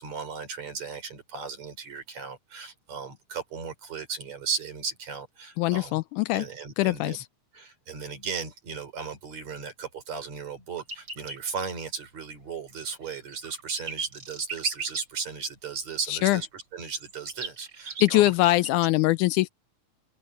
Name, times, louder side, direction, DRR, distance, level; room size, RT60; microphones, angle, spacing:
voice 1, 0.0-6.0 6.3-7.2 7.5-18.3, right 5 dB, 60° right, 5.7 m, -36 dB
voice 2, 5.6-6.5 6.8-7.2 16.1-16.4 18.0-19.5, left 17 dB, 80° left, 2.0 m, -22 dB
sound 1, 10.8-11.6 12.9-15.0 16.8-18.9, right 4 dB, 40° right, 3.5 m, -37 dB
open air
omnidirectional pair, 3.6 m